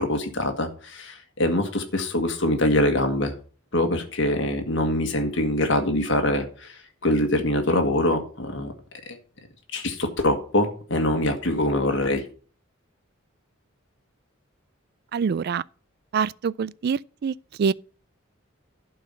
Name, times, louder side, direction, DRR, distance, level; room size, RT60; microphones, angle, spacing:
voice 1, 0.0-3.3 3.7-8.7 9.1-9.2 9.7-12.2, left 1 dB, 60° left, 1.8 m, -24 dB
voice 2, 15.1-15.6 16.1-17.3 17.6-17.7, right 6 dB, 50° right, 0.3 m, -25 dB
11.5 x 4.8 x 5.7 m
head